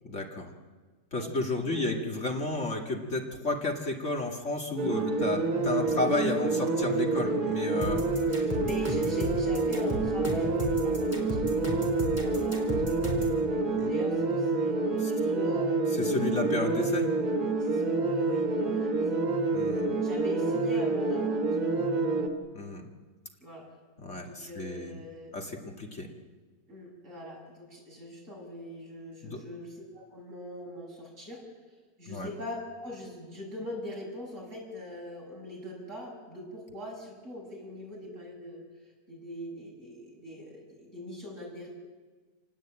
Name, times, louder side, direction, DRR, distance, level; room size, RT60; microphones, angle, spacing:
voice 1, 0.0-0.5 1.1-8.0 13.7-13.9 15.0-15.1 15.9-17.1 19.5-19.9 22.5-22.9 24.0-25.0 25.3-26.1 29.2-29.4 32.1-32.3, left 2 dB, 45° left, 1 dB, 2.5 m, -32 dB
voice 2, 1.1-2.0 7.8-11.9 12.2-13.1 13.9-15.8 17.6-19.2 20.0-21.8 23.4-23.7 24.2-25.3 26.7-31.4 32.0-38.6 39.1-41.7, left 1 dB, 50° right, -2 dB, 8.1 m, -42 dB
sound 1, 4.8-22.3, right 3 dB, 75° right, 3.3 m, -28 dB
sound 2, 7.8-13.4, left 1 dB, 10° right, 4.7 m, -35 dB
28.5 x 19.5 x 8.8 m, 1.4 s
omnidirectional pair, 1.7 m